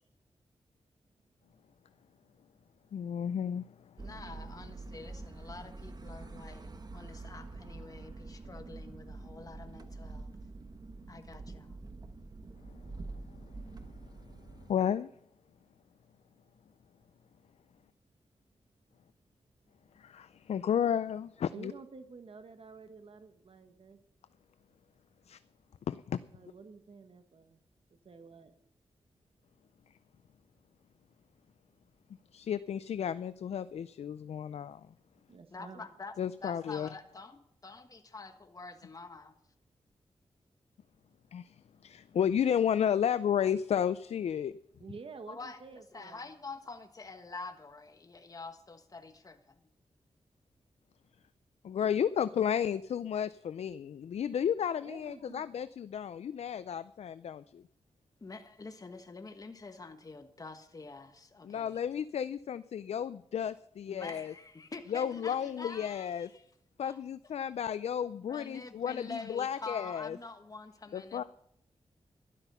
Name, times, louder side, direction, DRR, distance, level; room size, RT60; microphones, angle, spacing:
voice 1, 2.9-3.6 14.7-15.1 20.0-21.7 25.3-25.4 25.9-26.2 32.3-34.8 36.2-36.9 41.3-41.5 41.8-44.5 51.6-57.6 61.4-64.3 64.9-66.3 66.8-70.2 70.9-71.2, left 8 dB, 75° left, 14 dB, 0.4 m, -32 dB
voice 2, 4.0-10.3 11.1-11.8 35.5-36.1 36.4-39.3 45.3-49.6 58.2-61.8 63.9-66.4 66.8-67.0 68.2-71.2, left 3 dB, 35° left, 7 dB, 1.4 m, -47 dB
sound 1, 4.0-14.7, right 3 dB, 40° right, 1.1 m, -46 dB
voice 3, 21.5-24.0 26.3-27.6 28.0-28.5 35.3-35.9 44.8-46.3 54.8-55.5 65.0-65.5, right 4 dB, 60° right, 8 dB, 1.5 m, -50 dB
12.0 x 12.0 x 5.6 m, 0.73 s
wide cardioid pair, 90°, 11 cm